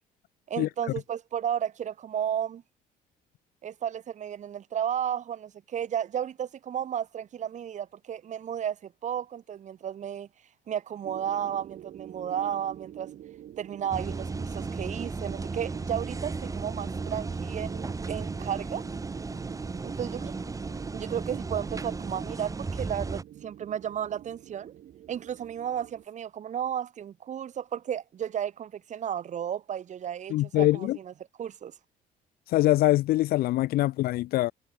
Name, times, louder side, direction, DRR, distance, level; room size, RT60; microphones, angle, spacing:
voice 1, 0.5-2.6 3.6-10.3 10.7-13.1 13.6-18.8 19.8-20.4 20.9-24.7 25.1-31.1 31.4-31.7, right 9 dB, 45° right, 1.1 m, -33 dB
sound 1, 11.0-26.0, right 12 dB, 60° right, 5.2 m, -47 dB
sound 2, 13.9-23.2, right 4 dB, 20° right, 1.4 m, -35 dB
voice 2, 30.3-31.0 32.5-34.5, left 16 dB, 65° left, 0.4 m, -23 dB
cardioid pair, 110°, 17 cm